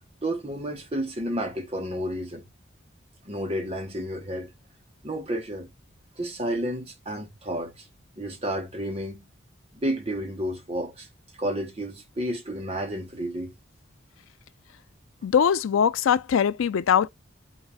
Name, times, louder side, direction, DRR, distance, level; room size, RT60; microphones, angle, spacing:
voice 1, 0.2-2.4 3.3-4.5 5.0-5.7 6.2-7.8 8.2-9.3 9.8-11.1 11.4-13.5, right 1 dB, 30° right, 0.9 m, -31 dB
voice 2, 15.2-17.1, left 8 dB, 85° left, 0.4 m, -21 dB
4.6 x 2.3 x 4.7 m
head